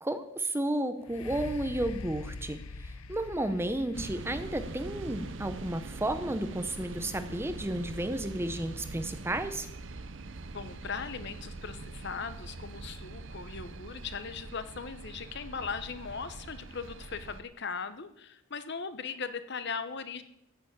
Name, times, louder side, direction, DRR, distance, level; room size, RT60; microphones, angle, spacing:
voice 1, 0.0-2.6 3.1-9.7, right 1 dB, 10° right, 10 dB, 0.7 m, -32 dB
sound 1, 1.0-8.8 9.4-9.5, left 3 dB, 80° left, 0.8 m, -45 dB
sound 2, 3.9-17.4, right 3 dB, 55° right, 0.8 m, -43 dB
voice 2, 10.5-20.2, left 5 dB, 50° left, 11 dB, 0.9 m, -39 dB
14.0 x 6.8 x 8.7 m, 0.80 s
head